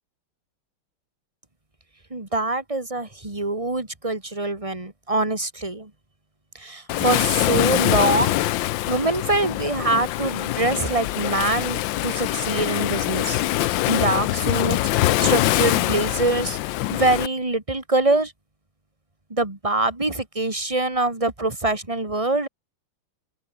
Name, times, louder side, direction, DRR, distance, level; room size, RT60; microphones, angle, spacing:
voice 1, 2.1-5.9 6.5-8.4 8.9-13.4 13.9-16.6 16.9-18.3 19.3-22.5, right 2 dB, 15° right, 2.8 m, -24 dB
Waves surf, 6.9-17.3, left 16 dB, 75° left, 1.2 m, -23 dB
open air
omnidirectional pair, 2.4 m